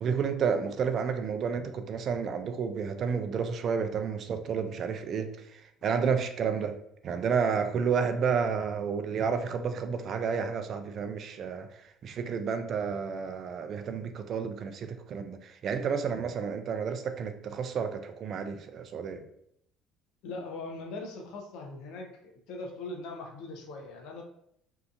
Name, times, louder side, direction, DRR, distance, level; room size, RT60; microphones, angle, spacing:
voice 1, 0.0-6.8 7.0-11.7 12.0-19.3, right 6 dB, 50° right, 8 dB, 0.3 m, -31 dB
voice 2, 20.2-22.1 22.5-24.2, left 2 dB, 75° left, 2 dB, 0.6 m, -40 dB
2.7 x 2.4 x 2.3 m, 0.73 s
supercardioid pair, 95°, 0 cm